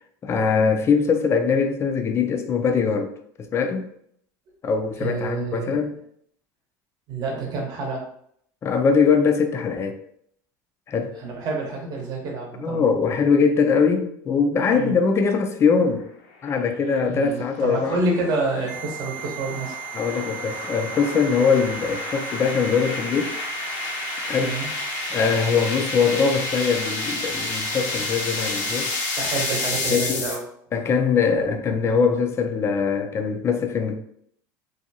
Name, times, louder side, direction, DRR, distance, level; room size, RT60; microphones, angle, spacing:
voice 1, 0.2-3.1 3.4-3.9 4.6-5.9 8.6-10.0 10.9-11.1 12.6-16.1 16.4-18.0 19.9-23.4 24.2-24.6 25.1-28.9 29.9-30.3 30.7-34.0, left 5 dB, 30° left, 0.4 m, -22 dB
voice 2, 5.0-5.8 7.1-8.1 11.2-12.9 14.7-15.0 17.1-19.7 24.3-24.7 29.2-30.5, right 3 dB, 45° right, 0.9 m, -28 dB
sound 1, 16.4-30.4, left 3 dB, 80° left, 0.6 m, -31 dB
sound 2, 18.7-30.1, right 15 dB, 70° right, 0.7 m, -36 dB
2.6 x 2.3 x 2.7 m
supercardioid pair, 115°, 9 cm